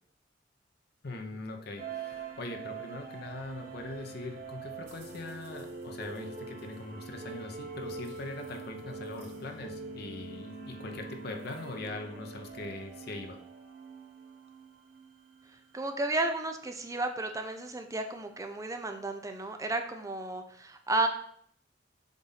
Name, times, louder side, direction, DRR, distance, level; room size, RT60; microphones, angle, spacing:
voice 1, 1.0-13.4, left 2 dB, 60° left, 3 dB, 0.8 m, -41 dB
sound 1, 1.8-15.9, right 5 dB, 50° right, 0.9 m, -45 dB
sound 2, 3.2-11.9, equal, 75° right, 2.7 m, -50 dB
voice 2, 15.7-21.1, right 2 dB, 20° right, 5 dB, 0.5 m, -33 dB
7.2 x 2.6 x 5.6 m, 0.64 s
head